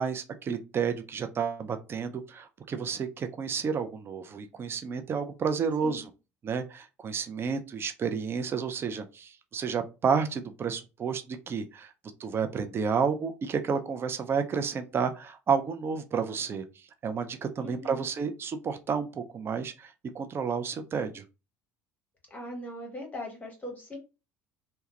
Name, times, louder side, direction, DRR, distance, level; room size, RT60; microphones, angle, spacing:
voice 1, 0.0-6.1 6.4-11.9 12.2-16.6 17.0-21.2, right 6 dB, 30° right, 0.4 m, -31 dB
voice 2, 17.6-18.0 22.3-24.0, left 1 dB, 20° left, 0.8 m, -40 dB
2.2 x 2.0 x 2.8 m
figure-of-eight pair, 60°, 8 cm